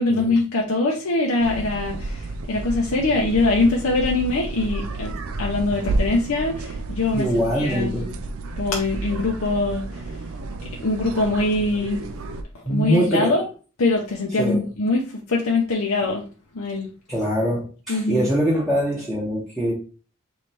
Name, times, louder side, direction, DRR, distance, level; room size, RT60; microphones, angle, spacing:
voice 1, 0.0-8.1 8.6-10.2 10.8-12.0 12.5-13.5 13.8-16.2 16.5-16.9 17.9-18.3, left 2 dB, 85° left, 0.7 m, -23 dB
sound 1, 1.4-12.4, right 2 dB, 80° right, 0.5 m, -31 dB
voice 2, 7.1-8.1 12.6-13.3 14.4-14.6 17.1-19.7, equal, ahead, 0.8 m, -23 dB
3.2 x 3.1 x 4.1 m
head